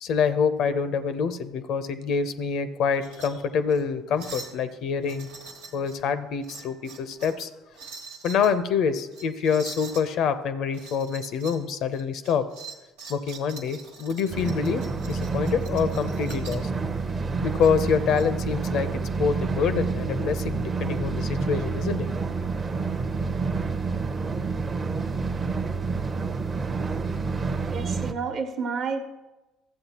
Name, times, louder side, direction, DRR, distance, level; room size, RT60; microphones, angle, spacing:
voice 1, 0.0-5.3 5.7-7.5 8.2-12.5 13.1-16.7 17.4-22.1, left 6 dB, 65° left, 11 dB, 0.6 m, -26 dB
sound 1, 2.9-3.3 3.7-3.8 4.2-4.6 5.0-6.0 6.4-7.4 7.7-8.5 9.1-10.1 10.7-11.6 11.9-16.7 17.6-18.2, right 4 dB, 90° right, 1.3 m, -44 dB
sound 2, 14.3-28.1, right 4 dB, 35° right, 0.7 m, -28 dB
voice 2, 27.7-29.0, right 5 dB, 55° right, 6 dB, 1.0 m, -30 dB
13.5 x 7.8 x 2.9 m, 1.1 s
hypercardioid pair, 70°, 0 cm